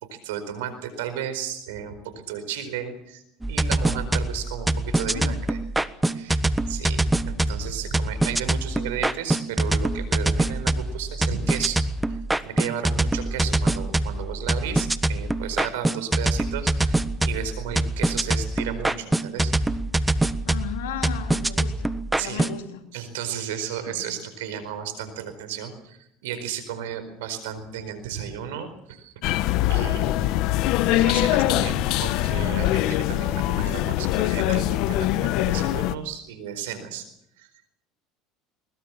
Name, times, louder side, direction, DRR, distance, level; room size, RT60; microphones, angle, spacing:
voice 1, 0.0-5.6 6.1-6.4 6.7-11.8 12.1-19.5 22.2-22.4 22.9-29.1 29.7-37.0 37.4-37.5, right 8 dB, 80° right, 11 dB, 4.5 m, -34 dB
sound 1, 3.4-22.6, right 2 dB, 10° right, 1.3 m, -24 dB
voice 2, 5.1-5.5 20.5-22.8 23.9-24.1, left 10 dB, 80° left, 5 dB, 3.3 m, -36 dB
sound 2, 29.2-36.0, left 15 dB, 65° left, 1.1 m, -23 dB
21.5 x 21.0 x 7.4 m, 0.78 s
hypercardioid pair, 85°, 0 cm